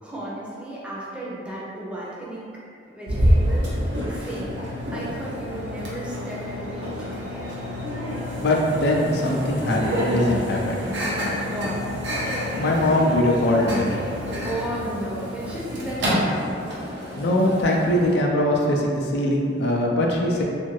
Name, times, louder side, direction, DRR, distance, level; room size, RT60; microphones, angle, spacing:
voice 1, 0.0-3.7 4.1-7.6 11.4-12.0 14.4-16.4 20.3-20.4, right 1 dB, 5° right, -7 dB, 0.5 m, -34 dB
Microwave oven, 3.1-18.1, equal, 75° right, 0.7 m, -27 dB
voice 2, 8.4-10.9 12.5-14.0 17.2-20.4, left 1 dB, 65° left, -1 dB, 0.4 m, -21 dB
2.6 x 2.5 x 3.1 m, 2.4 s
head